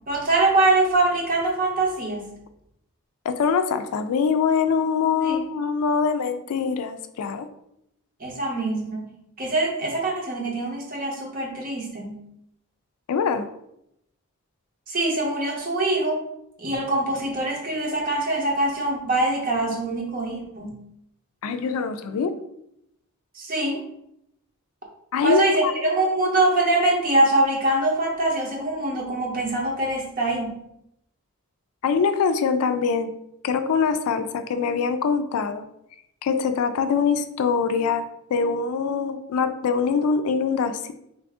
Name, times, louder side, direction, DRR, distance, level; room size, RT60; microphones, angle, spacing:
voice 1, 0.1-2.3 5.2-5.4 8.2-9.1 9.4-12.2 14.9-16.2 16.6-20.8 23.3-23.8 25.2-30.6, right 2 dB, 40° right, -1 dB, 0.7 m, -23 dB
voice 2, 3.2-7.5 13.1-13.5 21.4-22.3 25.1-25.9 31.8-33.1 33.4-35.7 36.2-38.0 38.3-40.9, left 5 dB, 80° left, 9 dB, 0.3 m, -23 dB
3.3 x 2.5 x 3.5 m, 0.79 s
head